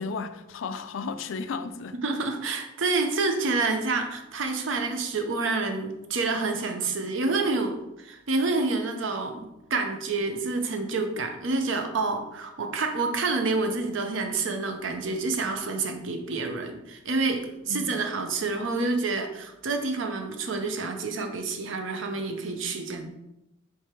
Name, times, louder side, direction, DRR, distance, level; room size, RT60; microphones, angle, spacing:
voice 1, 0.0-2.0 17.6-17.9, left 4 dB, 75° left, 0.4 m, -34 dB
voice 2, 2.0-23.1, right 3 dB, 70° right, 0.6 m, -28 dB
3.4 x 3.3 x 4.3 m
head